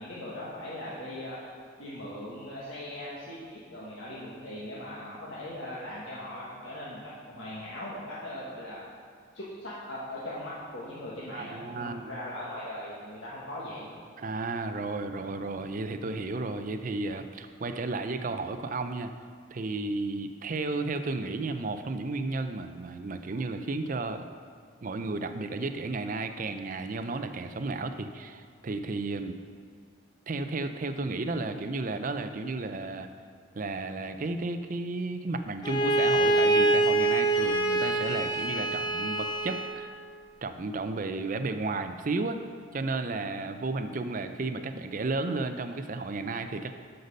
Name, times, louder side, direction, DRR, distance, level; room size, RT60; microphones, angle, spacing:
voice 1, 0.0-1.4 1.8-8.8 9.3-13.9, left 1 dB, 75° left, -7 dB, 1.5 m, -39 dB
voice 2, 11.3-12.1 14.2-19.1 19.5-24.2 24.8-29.4 30.3-33.1 33.5-39.9 40.4-42.4 42.7-46.7, right 3 dB, 40° right, 8 dB, 0.5 m, -33 dB
Bowed string instrument, 35.6-39.8, right 2 dB, 20° left, 0.5 m, -25 dB
8.0 x 6.7 x 5.3 m, 2.2 s
head